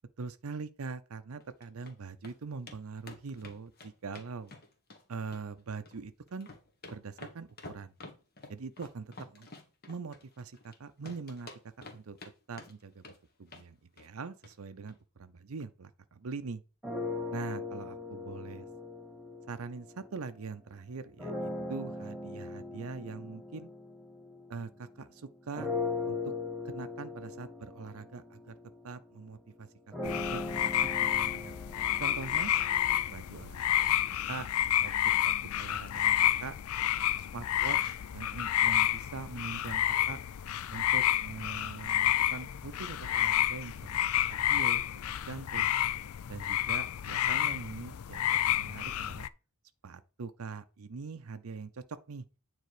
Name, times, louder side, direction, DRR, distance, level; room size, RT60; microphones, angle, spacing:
voice 1, 0.2-4.5 5.1-6.5 6.9-7.9 8.5-9.5 9.9-11.5 11.8-12.2 12.5-13.1 13.4-16.6 17.3-18.6 19.5-23.7 24.5-25.7 26.1-26.2 26.6-28.5 28.8-31.5 32.0-32.5 33.1-34.5 34.8-34.9 35.2-36.5 37.2-40.2 40.7-44.8 45.3-45.7 46.3-49.3 49.8-52.2, right 4 dB, 70° right, 0.6 m, -43 dB
sound 1, 1.4-1.9 2.2-2.3 2.7-2.8 3.1-5.0 5.3-6.0 6.3-10.8 11.0-12.3 12.6-13.2 13.5-13.7 14.0-14.1 14.4-14.5 14.9-15.0, left 2 dB, 45° left, 1.6 m, -49 dB
sound 2, 16.8-20.4 21.2-25.0 25.6-33.5, left 3 dB, ahead, 2.2 m, -39 dB
sound 3, 30.0-49.3, left 12 dB, 70° left, 0.4 m, -30 dB
9.3 x 4.1 x 4.9 m
head